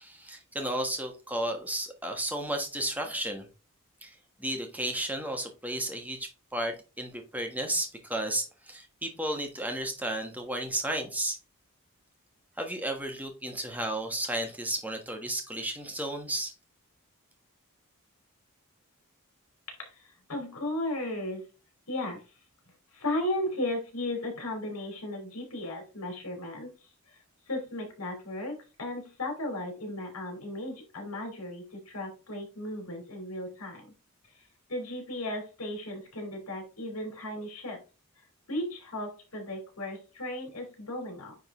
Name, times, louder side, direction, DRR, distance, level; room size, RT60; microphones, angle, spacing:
voice 1, 0.0-3.5 4.0-11.4 12.6-16.5, right 1 dB, 5° right, 1.3 m, -33 dB
voice 2, 19.8-21.5 21.9-22.3 22.9-33.9 34.2-37.8 38.2-41.4, left 1 dB, 80° left, 3.2 m, -36 dB
9.3 x 3.8 x 3.6 m
head